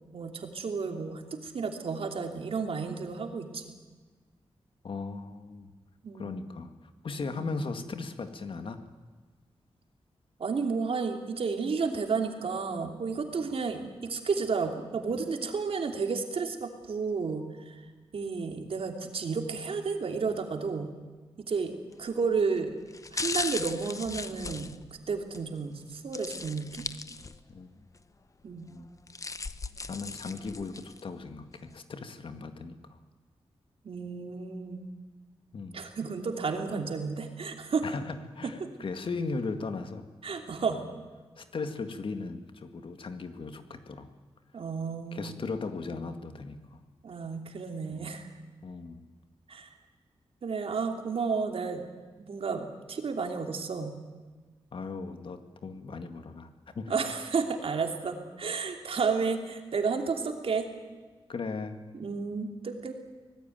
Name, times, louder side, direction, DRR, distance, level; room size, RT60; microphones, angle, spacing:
voice 1, 0.1-3.7 6.0-6.3 7.2-7.5 10.4-17.8 18.1-20.9 21.5-21.7 22.0-22.7 23.1-24.7 25.1-26.8 28.4-28.7 33.8-34.8 35.7-37.9 40.2-40.8 44.5-45.4 47.0-48.3 49.5-49.7 50.4-51.8 52.2-53.9 56.9-60.7 61.9-62.9, right 5 dB, 65° right, 4 dB, 3.0 m, -32 dB
voice 2, 4.8-5.7 6.2-6.7 7.0-8.8 27.5-27.7 28.7-28.9 29.9-32.8 35.5-35.8 37.8-40.1 40.4-40.5 40.7-40.9 41.4-44.1 45.1-46.8 47.9-48.1 48.6-49.0 54.7-56.5 56.8-56.9 61.3-61.8, left 4 dB, 55° left, 8 dB, 2.0 m, -37 dB
sound 1, 21.9-22.2 22.9-25.4 26.1-27.6 28.0-28.1 28.8-31.0 31.5-31.6, left 3 dB, 30° left, 0.9 m, -37 dB
25.5 x 19.0 x 9.3 m, 1.4 s
wide cardioid pair, 160°, 10 cm